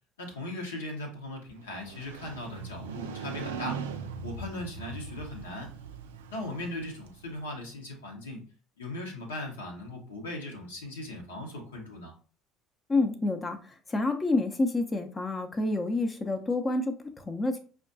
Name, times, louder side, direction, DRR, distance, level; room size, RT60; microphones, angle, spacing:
voice 1, 0.2-3.8 4.2-5.7 6.3-8.4 8.8-12.1, left 1 dB, 85° left, 1 dB, 0.8 m, -38 dB
Motorcycle, 1.6-7.5, right 5 dB, 80° right, 0.3 m, -40 dB
voice 2, 12.9-17.6, left 2 dB, 25° left, 6 dB, 0.5 m, -28 dB
5.0 x 2.3 x 2.5 m, 0.40 s
hypercardioid pair, 65°, 0 cm